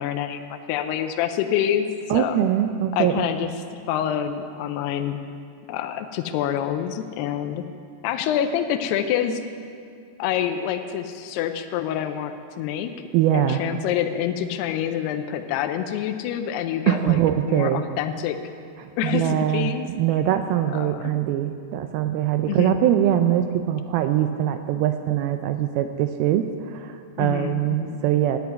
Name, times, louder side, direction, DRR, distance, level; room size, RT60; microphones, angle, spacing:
voice 1, 0.0-2.4 2.9-3.5 3.9-5.2 5.7-7.6 8.0-9.4 10.2-12.9 13.3-18.4 19.0-19.9 20.7-21.0 22.5-22.8 27.2-28.0, left 10 dB, 80° left, 7 dB, 2.6 m, -27 dB
voice 2, 2.1-3.5 13.1-13.6 16.9-17.8 18.8-28.4, right 11 dB, 90° right, 8 dB, 2.1 m, -23 dB
13.5 x 9.5 x 9.2 m, 2.4 s
omnidirectional pair, 5.0 m